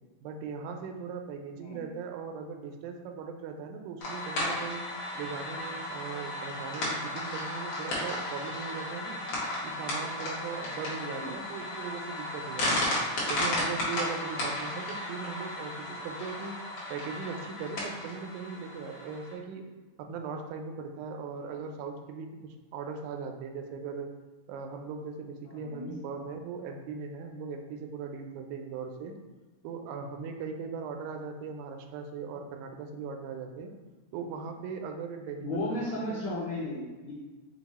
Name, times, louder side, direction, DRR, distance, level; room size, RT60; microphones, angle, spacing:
voice 1, 0.2-4.9 5.1-9.2 9.6-12.9 13.3-16.5 16.9-19.6 20.1-24.1 24.5-29.1 29.6-33.7 34.1-36.3, right 5 dB, 85° right, 4 dB, 2.0 m, -39 dB
sound 1, 4.0-19.3, left 1 dB, 60° left, 1.7 m, -34 dB
voice 2, 25.4-25.9 35.4-37.1, left 1 dB, 80° left, -8 dB, 1.2 m, -35 dB
5.3 x 2.3 x 4.1 m, 1.2 s
omnidirectional pair, 3.6 m